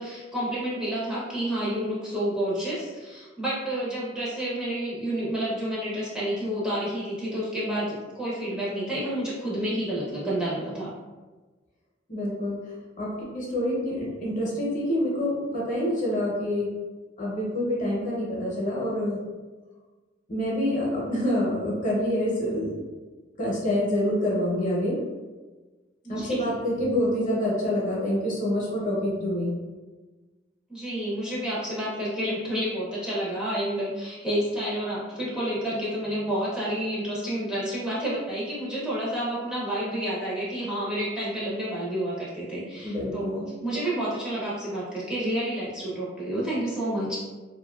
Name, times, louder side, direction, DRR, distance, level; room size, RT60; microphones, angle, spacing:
voice 1, 0.0-10.9 26.0-26.4 30.7-47.2, right 1 dB, 5° right, -8 dB, 0.6 m, -29 dB
voice 2, 12.1-16.7 17.2-19.2 20.3-22.7 23.4-24.9 26.1-29.5 42.8-43.5, left 1 dB, 45° left, -5 dB, 0.8 m, -27 dB
2.6 x 2.3 x 2.3 m, 1.3 s
head